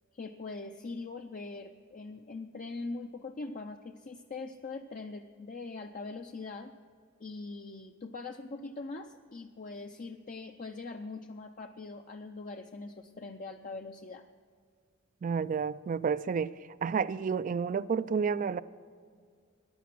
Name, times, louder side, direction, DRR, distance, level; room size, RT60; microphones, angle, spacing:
voice 1, 0.1-6.7 7.2-14.2, left 3 dB, 40° left, 4 dB, 0.5 m, -42 dB
voice 2, 15.2-16.5 16.8-18.6, right 6 dB, 40° right, 17 dB, 0.3 m, -30 dB
14.0 x 10.0 x 6.0 m, 2.1 s
head